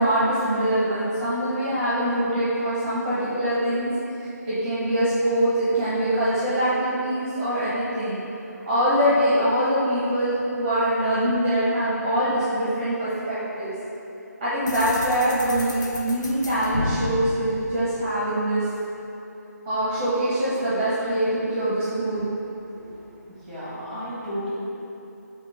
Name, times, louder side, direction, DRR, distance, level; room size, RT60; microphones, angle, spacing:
voice 1, 0.0-3.9 4.5-8.2 8.7-13.7 14.4-18.6 19.7-22.3, right 1 dB, 20° right, -10 dB, 0.7 m, -23 dB
sound 1, 14.7-18.5, left 2 dB, 85° left, 0.5 m, -32 dB
voice 2, 22.6-24.5, equal, 5° left, -12 dB, 1.0 m, -35 dB
3.7 x 2.9 x 4.7 m, 2.9 s
figure-of-eight pair, 160°, 10 cm